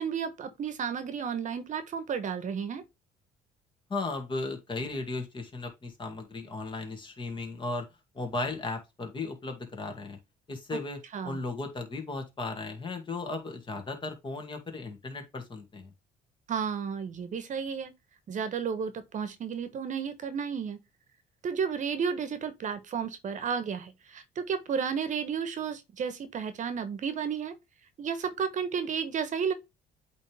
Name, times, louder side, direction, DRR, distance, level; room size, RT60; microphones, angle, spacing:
voice 1, 0.0-2.8 11.1-11.4 16.5-17.9 18.3-20.8 21.4-27.6 28.0-29.5, right 6 dB, 45° right, 1.1 m, -32 dB
voice 2, 3.9-7.9 8.1-10.2 10.5-15.9, left 3 dB, 30° left, 2.2 m, -36 dB
8.3 x 3.4 x 3.5 m
cardioid pair, 110°, 17 cm